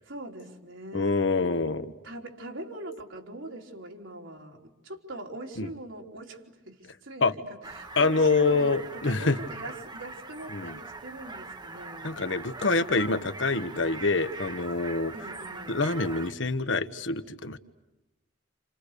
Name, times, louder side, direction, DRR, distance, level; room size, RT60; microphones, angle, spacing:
voice 1, 0.0-1.2 2.0-12.2 15.1-15.8, right 1 dB, 80° right, 1 dB, 3.9 m, -42 dB
voice 2, 0.9-1.9 5.6-5.7 7.2-7.3 8.0-9.4 10.5-10.8 12.0-15.1 15.7-17.6, left 3 dB, 70° left, 10 dB, 1.4 m, -26 dB
sound 1, 7.6-16.3, right 3 dB, 20° right, 1.1 m, -42 dB
30.0 x 29.0 x 6.8 m, 1.0 s
head